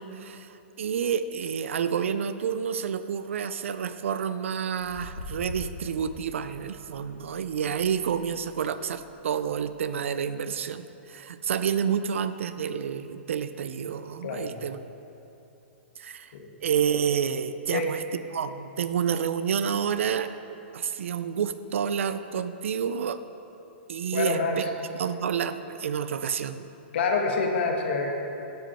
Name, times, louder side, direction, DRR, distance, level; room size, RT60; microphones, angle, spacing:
voice 1, 0.0-14.8 16.0-16.3 16.6-18.0 18.3-20.3 20.7-23.2 23.9-24.7 25.0-26.7, right 7 dB, 85° right, 12 dB, 0.4 m, -29 dB
sound 1, 3.2-3.6 4.7-9.1, left 2 dB, 80° left, 1.3 m, -44 dB
voice 2, 24.1-24.7 26.9-28.1, left 4 dB, 60° left, 3 dB, 1.1 m, -26 dB
12.0 x 5.2 x 4.3 m, 2.8 s
hypercardioid pair, 155°, 7 cm